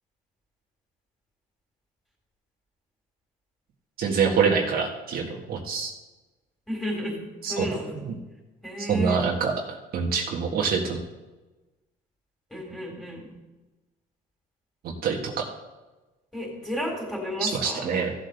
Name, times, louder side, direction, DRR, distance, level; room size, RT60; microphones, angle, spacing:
voice 1, 4.0-5.9 7.4-7.6 7.9-8.2 8.8-9.5 9.9-11.0 14.8-15.4 17.4-18.1, right 6 dB, 65° right, 0 dB, 1.6 m, -25 dB
voice 2, 6.7-7.2 7.5-7.9 8.6-9.2 12.5-13.3 16.3-17.9, equal, 5° left, -2 dB, 4.0 m, -32 dB
15.0 x 7.8 x 3.4 m, 1.1 s
cardioid pair, 110°, 17 cm